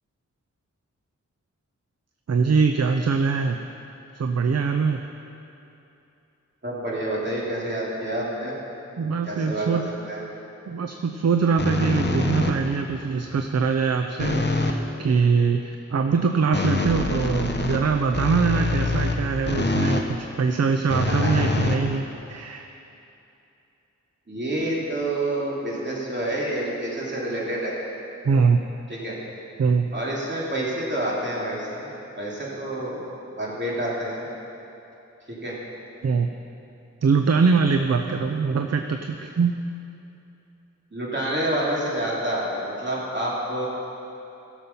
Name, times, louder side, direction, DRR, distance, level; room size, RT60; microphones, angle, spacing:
voice 1, 2.3-3.6 4.1-5.0 9.0-9.9 10.7-22.7 28.2-28.6 29.6-29.9 36.0-36.3 37.0-39.6, right 5 dB, 60° right, 5 dB, 0.6 m, -23 dB
voice 2, 6.6-8.6 9.2-9.8 10.1-10.3 21.0-21.3 24.3-27.8 28.9-29.2 29.9-34.3 35.3-35.6 40.9-43.7, right 1 dB, 40° right, -5 dB, 2.9 m, -28 dB
sound 1, 11.6-12.8 14.2-14.9 16.5-20.1 20.9-22.4, left 3 dB, 35° left, 1.0 m, -25 dB
15.5 x 7.3 x 5.5 m, 2.8 s
wide cardioid pair, 65°, 30 cm